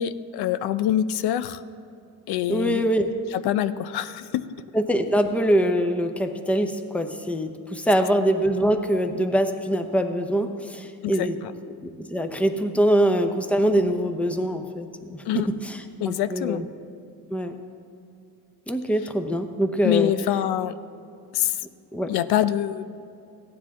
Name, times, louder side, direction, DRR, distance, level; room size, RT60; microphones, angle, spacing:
voice 1, 0.0-1.6 2.3-2.9 3.3-4.5 11.0-11.3 15.3-15.5 16.0-16.6 19.8-20.7 21.3-21.6 22.1-22.8, left 11 dB, 85° left, 13 dB, 0.5 m, -25 dB
voice 2, 2.5-3.1 4.7-11.4 11.8-16.6 17.3-17.5 18.7-20.1 21.9-22.1, equal, 5° left, 6 dB, 0.7 m, -24 dB
15.5 x 9.8 x 3.6 m, 2.6 s
cardioid pair, 120°, 38 cm